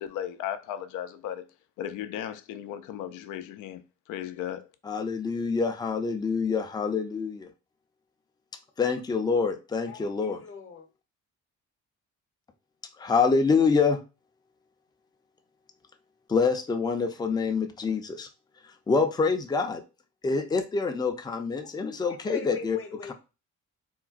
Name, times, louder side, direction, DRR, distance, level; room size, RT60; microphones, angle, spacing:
voice 1, 0.0-1.5 1.8-4.7, left 10 dB, 85° left, 0.5 m, -36 dB
voice 2, 4.9-7.5 8.8-10.4 13.0-14.0 16.3-18.3 18.9-19.8 20.2-22.8, left 4 dB, 15° left, 0.4 m, -26 dB
voice 3, 9.9-10.9 21.6-21.7 22.0-23.1, left 5 dB, 45° left, 0.8 m, -42 dB
3.7 x 2.2 x 2.4 m
cardioid pair, 90°, 30 cm